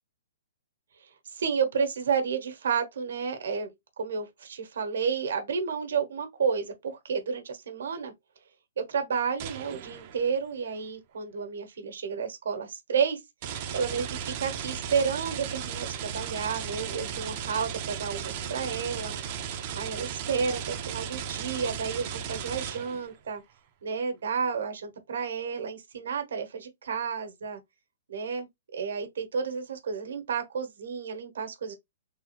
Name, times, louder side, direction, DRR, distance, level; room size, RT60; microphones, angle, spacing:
voice 1, 1.3-3.7 4.0-8.1 8.8-13.2 13.7-19.1 19.8-23.4 23.8-27.6 28.1-31.7, right 6 dB, 65° right, 1.1 m, -31 dB
sound 1, 9.4-10.4 13.4-23.2, right 8 dB, 25° right, 0.4 m, -36 dB
3.5 x 2.4 x 3.0 m
hypercardioid pair, 180°, 0 cm